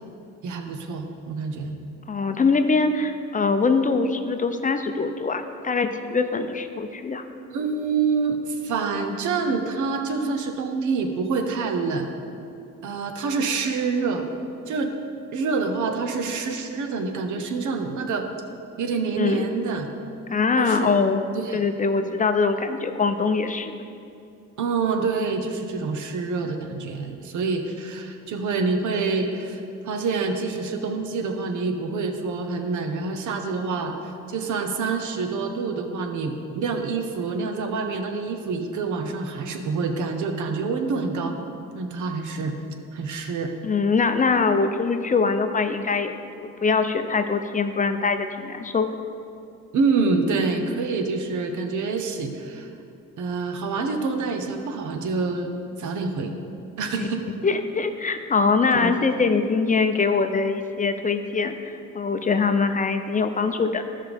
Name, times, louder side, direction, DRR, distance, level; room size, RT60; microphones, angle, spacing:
voice 1, 0.4-1.8 7.5-12.1 12.8-14.3 14.7-14.9 15.3-18.3 18.8-19.9 20.6-20.9 21.3-21.6 24.6-33.9 34.3-41.3 41.7-42.5 42.9-43.5 49.7-52.7 53.2-55.5 55.8-56.3 56.8-57.2 58.7-58.9, right 4 dB, 75° right, 5 dB, 1.0 m, -26 dB
voice 2, 2.1-7.2 19.2-19.4 20.3-21.2 21.5-23.8 43.6-48.9 57.0-57.1 57.4-63.8, left 4 dB, 25° left, 8 dB, 0.6 m, -23 dB
15.5 x 5.6 x 3.5 m, 2.5 s
cardioid pair, 90°, 30 cm